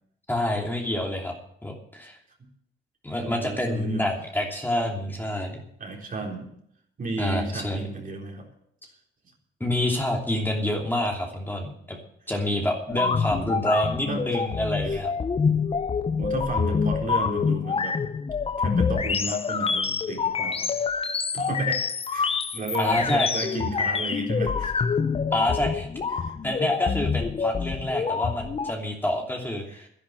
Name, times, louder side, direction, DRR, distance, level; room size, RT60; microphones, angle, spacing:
voice 1, 0.3-1.3 1.6-2.2 3.0-5.6 7.2-7.9 9.6-12.0 12.3-15.1 22.8-23.3 25.3-25.9 26.4-29.9, left 1 dB, 10° left, 0 dB, 2.9 m, -27 dB
voice 2, 3.2-4.0 5.8-6.5 7.0-8.5 12.9-13.6 14.1-14.4 14.9-15.0 16.2-18.0 18.6-20.7 21.3-24.9 26.2-26.4 29.7-29.9, right 3 dB, 45° right, 0 dB, 4.0 m, -34 dB
sound 1, 12.9-28.7, left 5 dB, 30° left, 0.7 m, -26 dB
11.0 x 11.0 x 7.9 m, 0.69 s
cardioid pair, 90°, 20 cm